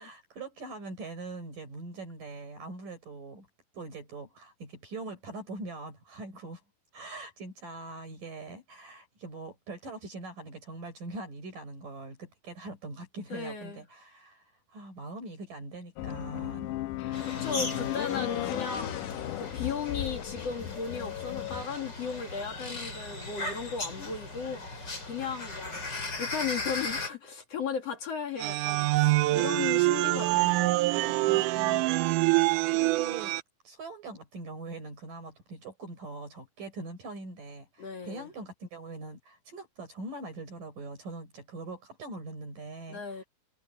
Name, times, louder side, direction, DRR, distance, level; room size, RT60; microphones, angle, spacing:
voice 1, 0.0-3.5 3.7-6.6 6.9-16.7 17.0-17.2 17.6-18.0 18.3-18.6 24.0-24.1 32.7-33.3 33.6-43.3, right 2 dB, 60° right, 7.7 m, -42 dB
voice 2, 13.3-13.8 17.2-19.0 19.4-31.2 37.8-38.3 42.9-43.2, left 6 dB, 50° left, 2.8 m, -36 dB
sound 1, 16.0-21.6, left 15 dB, 75° left, 2.0 m, -35 dB
sound 2, 17.1-27.1, left 2 dB, 30° left, 5.6 m, -38 dB
sound 3, 28.4-33.4, right 20 dB, 85° right, 1.8 m, -25 dB
omnidirectional pair, 4.2 m